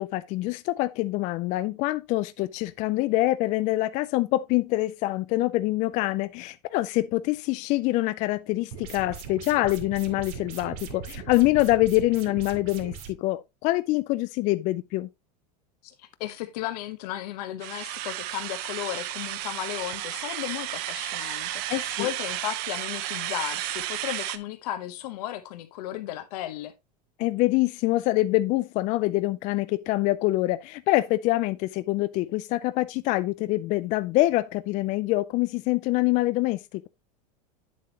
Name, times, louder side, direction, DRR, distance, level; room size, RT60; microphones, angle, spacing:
voice 1, 0.0-15.1 21.7-22.1 27.2-36.6, left 18 dB, 35° left, 0.4 m, -25 dB
sound 1, 8.7-13.1, right 7 dB, 65° right, 2.3 m, -40 dB
voice 2, 15.8-26.7, left 13 dB, 70° left, 1.1 m, -35 dB
sound 2, 17.6-24.4, right 14 dB, 50° right, 0.8 m, -33 dB
8.7 x 7.6 x 2.9 m
supercardioid pair, 140°, 21 cm